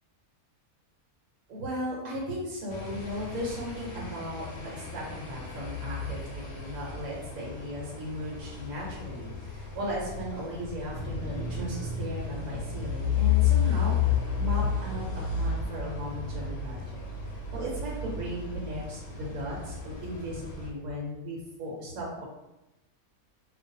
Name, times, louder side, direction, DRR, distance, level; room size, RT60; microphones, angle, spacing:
voice 1, 1.5-17.0 17.5-22.2, equal, 70° right, -5 dB, 1.2 m, -36 dB
sound 1, 2.7-20.7, left 7 dB, 85° left, 1.1 m, -32 dB
2.5 x 2.3 x 2.7 m, 0.96 s
omnidirectional pair, 1.5 m